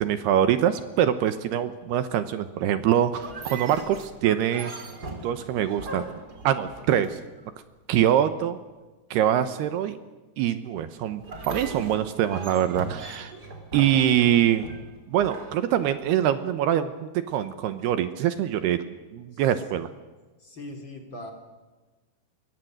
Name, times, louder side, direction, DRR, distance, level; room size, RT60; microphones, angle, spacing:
voice 1, 0.0-4.9 5.1-6.1 6.4-7.2 7.9-8.6 9.1-10.0 10.4-13.3 13.7-14.7 15.1-18.8 19.1-19.9, right 10 dB, 75° right, 11 dB, 2.9 m, -24 dB
sound 1, 3.1-7.4 11.2-16.3, right 2 dB, 25° right, 3.2 m, -39 dB
voice 2, 20.4-21.3, left 1 dB, 30° left, 4 dB, 3.8 m, -41 dB
26.5 x 23.5 x 7.8 m, 1.2 s
omnidirectional pair, 5.0 m